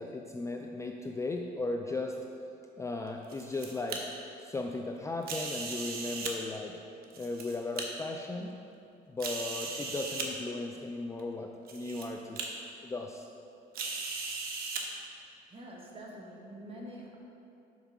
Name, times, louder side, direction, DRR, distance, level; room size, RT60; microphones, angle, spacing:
voice 1, 0.0-2.2 2.8-4.1 4.4-6.8 7.2-8.5 9.1-12.4 12.8-13.3, left 2 dB, 15° left, 2 dB, 0.4 m, -36 dB
sound 1, 3.1-4.0 5.2-6.3 7.0-7.8 8.5-8.6 9.2-10.3 11.2-11.3 11.7-12.0 12.4-12.5 13.7-14.8, right 4 dB, 60° right, 1.0 m, -37 dB
voice 2, 15.5-17.2, equal, 35° right, -2 dB, 1.4 m, -46 dB
5.6 x 4.6 x 6.0 m, 2.6 s
cardioid pair, 110°, 17 cm